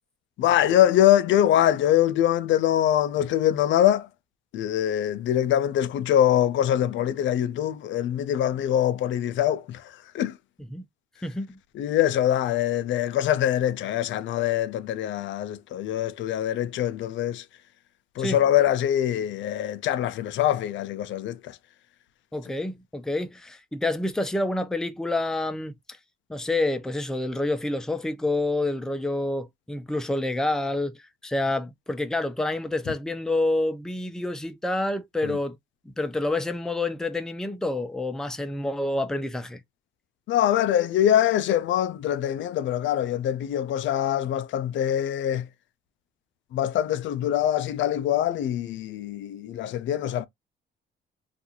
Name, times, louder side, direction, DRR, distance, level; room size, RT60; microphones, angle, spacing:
voice 1, 0.4-4.1 4.5-9.8 10.1-10.3 11.8-17.4 18.2-21.6 35.2-35.4 40.3-45.5 46.5-50.3, left 11 dB, 70° left, 0.4 m, -23 dB
voice 2, 22.3-26.0 26.3-35.6 35.9-39.6, left 2 dB, 5° left, 0.4 m, -28 dB
2.5 x 2.3 x 2.8 m
cardioid pair, 90°, 20 cm